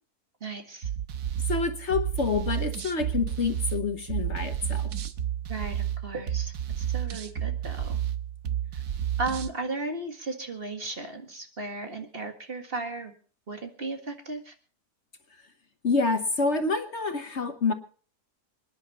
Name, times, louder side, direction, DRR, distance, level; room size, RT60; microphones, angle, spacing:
voice 1, 0.4-0.9 5.5-8.0 9.2-13.1 13.5-14.5, right 3 dB, 40° right, 5 dB, 2.0 m, -35 dB
sound 1, 0.8-9.5, right 10 dB, 80° right, 1.5 m, -31 dB
voice 2, 1.5-4.9 15.8-17.7, left 4 dB, 50° left, 8 dB, 1.3 m, -27 dB
26.0 x 10.0 x 4.2 m, 0.42 s
omnidirectional pair, 1.6 m